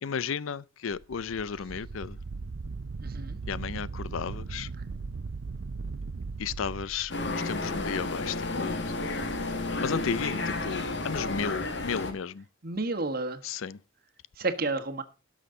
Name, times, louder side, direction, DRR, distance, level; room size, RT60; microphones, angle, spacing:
voice 1, 0.0-2.2 3.5-4.7 6.4-8.8 9.8-12.4 13.4-13.8, left 6 dB, 90° left, 0.5 m, -34 dB
Wind, 0.9-7.3, right 4 dB, 75° right, 0.6 m, -38 dB
voice 2, 3.0-3.4 12.6-13.4 14.4-15.0, right 3 dB, 50° right, 1.3 m, -31 dB
sound 1, 7.1-12.1, left 2 dB, 60° left, 1.7 m, -32 dB
17.5 x 6.4 x 3.7 m
head